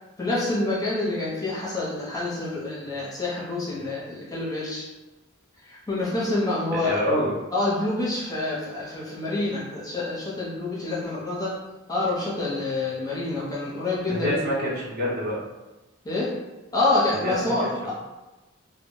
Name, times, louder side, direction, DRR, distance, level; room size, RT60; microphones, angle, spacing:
voice 1, 0.2-4.9 5.6-6.9 7.5-11.6 11.9-14.4 16.0-16.3 16.7-17.9, left 2 dB, 20° left, -6 dB, 0.6 m, -27 dB
voice 2, 6.7-7.3 14.1-15.4 17.2-17.7, equal, 50° right, -5 dB, 0.7 m, -26 dB
2.1 x 2.0 x 3.6 m, 1.1 s
head